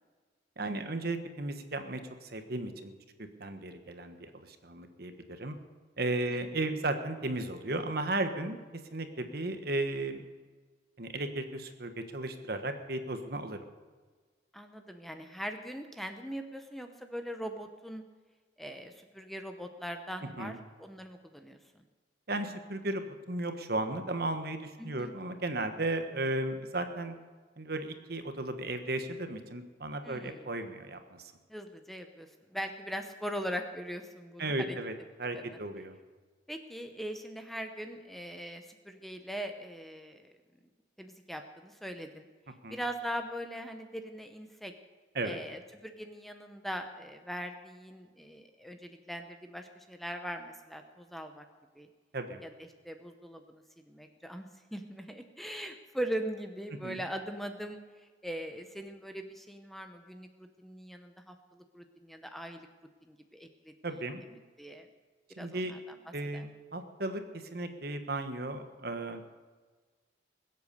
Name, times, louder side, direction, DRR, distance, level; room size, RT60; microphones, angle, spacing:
voice 1, 0.6-2.9 3.2-5.5 6.0-8.6 8.9-10.3 11.0-13.6 20.4-20.6 22.3-27.1 27.6-31.3 34.4-34.9 35.2-36.0 42.6-42.8 45.1-45.4 52.1-52.4 56.8-57.0 63.8-64.2 65.4-65.7 66.1-69.2, right 2 dB, 55° right, 7 dB, 1.3 m, -35 dB
voice 2, 14.5-18.0 18.6-21.6 24.8-25.1 30.0-30.5 31.5-34.8 35.3-35.4 36.5-40.3 41.0-42.3 42.7-44.7 45.2-51.4 51.8-51.9 52.4-52.5 52.8-57.8 58.2-62.7 63.0-63.7 64.6-64.9 65.4-65.9 66.3-66.5, equal, ahead, 6 dB, 0.8 m, -41 dB
21.0 x 8.3 x 6.7 m, 1.4 s
head